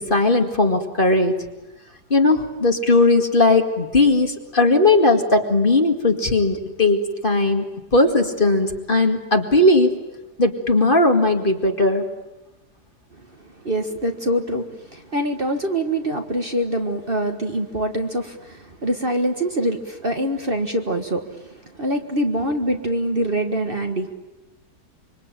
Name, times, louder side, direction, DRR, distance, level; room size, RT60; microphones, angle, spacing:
voice 1, 0.0-1.4 2.1-7.7 7.9-9.9 10.4-12.1, left 2 dB, 30° left, 4 dB, 2.4 m, -18 dB
voice 2, 13.4-24.1, right 1 dB, 35° right, 5 dB, 1.7 m, -24 dB
26.0 x 24.5 x 9.0 m, 1.0 s
omnidirectional pair, 1.7 m